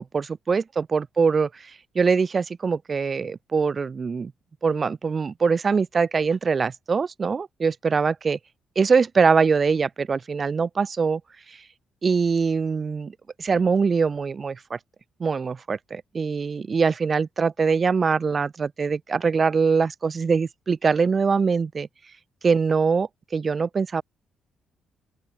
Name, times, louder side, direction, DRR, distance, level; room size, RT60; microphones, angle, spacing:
voice 1, 0.0-4.3 4.6-8.4 8.7-11.2 11.5-11.6 12.0-14.8 15.2-21.9 22.4-24.0, right 5 dB, 40° right, 1.2 m, -23 dB
open air
cardioid pair, 90°, 0 cm